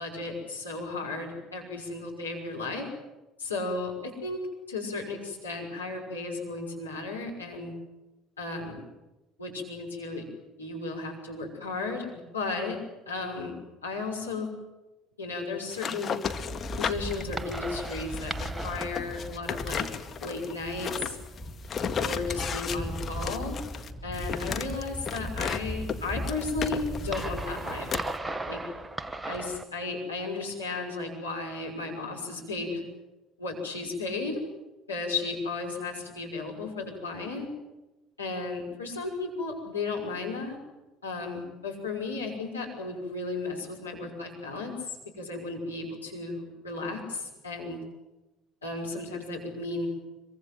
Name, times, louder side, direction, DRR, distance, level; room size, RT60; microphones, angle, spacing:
voice 1, 0.0-2.9 3.4-4.4 4.7-7.7 8.4-8.8 9.4-10.2 10.6-12.1 12.3-12.8 13.1-13.5 13.8-14.5 15.2-16.1 16.8-19.8 20.2-21.2 22.0-23.6 24.0-27.9 28.4-28.6 29.3-32.8 33.4-34.4 34.9-37.5 38.2-40.6 41.0-47.8 48.6-49.9, left 3 dB, 90° left, -1 dB, 6.0 m, -34 dB
sound 1, 15.7-25.6 25.9-28.2, left 7 dB, 40° left, 1.9 m, -35 dB
sound 2, 16.2-29.6, right 1 dB, 15° right, 1.6 m, -37 dB
25.5 x 23.5 x 7.8 m, 1.1 s
figure-of-eight pair, 60°, 0 cm